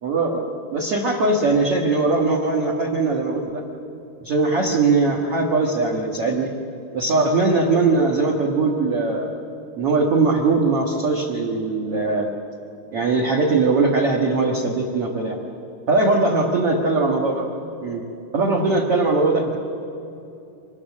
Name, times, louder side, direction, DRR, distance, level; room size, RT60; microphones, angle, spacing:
voice 1, 0.0-3.6 4.2-6.5 6.9-9.2 9.8-12.3 12.9-15.4 15.9-17.5 17.8-18.0 18.3-19.6, right 3 dB, 45° right, -2 dB, 2.2 m, -20 dB
25.0 x 21.0 x 7.4 m, 2.8 s
omnidirectional pair, 4.6 m